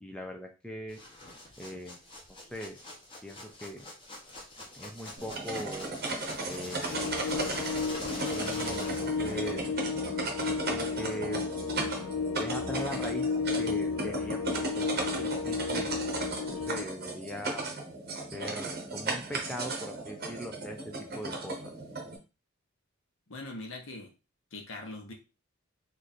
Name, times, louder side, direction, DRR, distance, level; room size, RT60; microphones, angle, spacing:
voice 1, 0.0-1.0 1.6-2.0 2.4-2.8 3.2-3.9 4.7-6.0 6.5-7.1 8.3-9.6 10.7-11.4 12.3-16.0 16.5-17.6 18.3-21.7, equal, 5° left, 1 dB, 0.4 m, -40 dB
sound 1, 0.9-9.6, left 1 dB, 25° left, 1.0 m, -44 dB
sound 2, 5.2-22.2, right 3 dB, 45° right, 0.8 m, -36 dB
sound 3, 6.9-16.8, left 5 dB, 85° left, 0.4 m, -33 dB
voice 2, 23.3-24.1 24.5-25.1, left 2 dB, 65° left, 3 dB, 1.0 m, -41 dB
3.2 x 2.5 x 4.1 m, 0.30 s
head